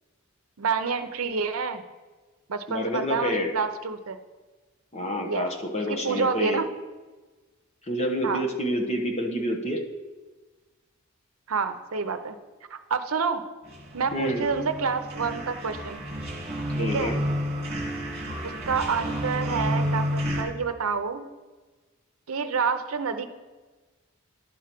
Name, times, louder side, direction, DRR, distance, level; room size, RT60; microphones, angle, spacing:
voice 1, 0.6-1.8 2.5-4.2 5.2-5.5 5.9-6.7 8.2-8.4 11.5-12.4 12.7-13.4 13.9-16.0 16.8-17.1 18.4-21.3 22.3-23.3, right 5 dB, 80° right, 9 dB, 0.7 m, -28 dB
voice 2, 2.7-3.5 4.9-6.6 7.9-9.8 14.1-14.4 16.7-17.1, equal, 30° left, 2 dB, 1.1 m, -28 dB
sound 1, 13.6-20.4, equal, 30° right, 2.1 m, -30 dB
11.0 x 4.8 x 5.9 m, 1.3 s
head